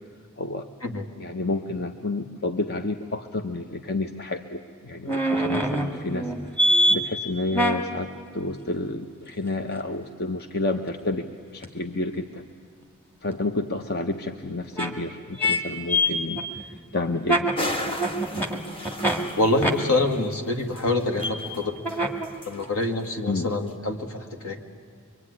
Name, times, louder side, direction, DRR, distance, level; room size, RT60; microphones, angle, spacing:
voice 1, 0.4-0.7 1.2-6.3 6.6-12.5 13.2-17.5 23.3-23.5, left 2 dB, 45° left, 6 dB, 0.9 m, -30 dB
sound 1, 5.1-7.0 7.5-7.8 11.6-11.7 13.3-13.4 14.7-14.9 15.4-15.6 15.9-19.2 19.6-19.7 21.2-21.3 21.8-22.3 22.6-22.7, equal, 10° left, 2.0 m, -23 dB
sound 2, 17.6-19.7 20.2-20.3 20.7-22.0 22.2-22.9, left 1 dB, 25° left, 1.5 m, -35 dB
voice 2, 19.4-22.2 22.5-24.7, left 2 dB, 65° left, 4 dB, 2.3 m, -26 dB
24.0 x 24.0 x 9.8 m, 2.1 s
head